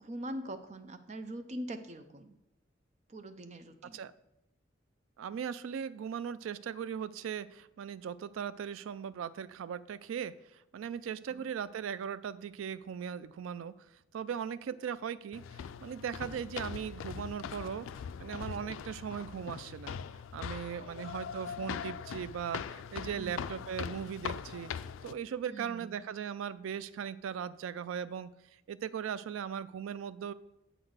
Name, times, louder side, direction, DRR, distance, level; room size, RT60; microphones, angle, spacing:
voice 1, 0.0-2.3 3.1-4.0 11.3-11.4 20.8-21.1 23.1-23.3 25.5-26.0, right 1 dB, 35° right, 9 dB, 0.5 m, -43 dB
voice 2, 5.2-13.7 14.1-17.9 18.2-20.0 20.3-24.7 25.0-28.3 28.7-30.3, right 8 dB, 90° right, 16 dB, 0.3 m, -38 dB
sound 1, 15.3-25.1, left 7 dB, 85° left, 0.3 m, -41 dB
7.9 x 3.9 x 6.3 m, 0.88 s
head